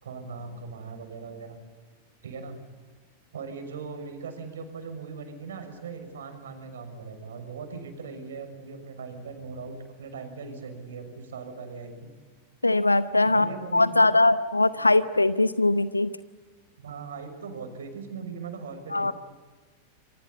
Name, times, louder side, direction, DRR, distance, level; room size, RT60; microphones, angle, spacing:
voice 1, 0.0-1.6 2.2-2.6 3.3-12.1 13.2-14.1 14.6-15.0 16.8-19.1, right 5 dB, 65° right, 6 dB, 6.2 m, -40 dB
voice 2, 12.6-16.1 18.9-19.1, left 2 dB, 85° left, 15 dB, 0.8 m, -21 dB
28.5 x 24.5 x 8.4 m, 1.4 s
figure-of-eight pair, 90°, 0 cm